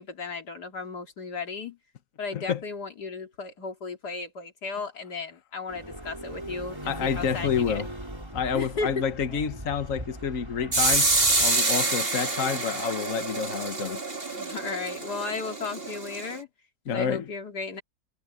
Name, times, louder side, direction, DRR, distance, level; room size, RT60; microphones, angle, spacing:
voice 1, 0.0-1.8 2.2-7.8 8.5-9.1 14.4-16.5 16.9-17.8, left 4 dB, 80° left, 3.2 m, -35 dB
voice 2, 2.3-2.6 6.8-7.9 8.3-11.1 11.4-14.0 16.9-17.3, left 7 dB, 55° left, 1.6 m, -28 dB
sound 1, 5.7-11.5, right 1 dB, 15° right, 4.6 m, -39 dB
sound 2, 10.7-16.4, right 2 dB, 35° right, 2.9 m, -27 dB
omnidirectional pair, 1.7 m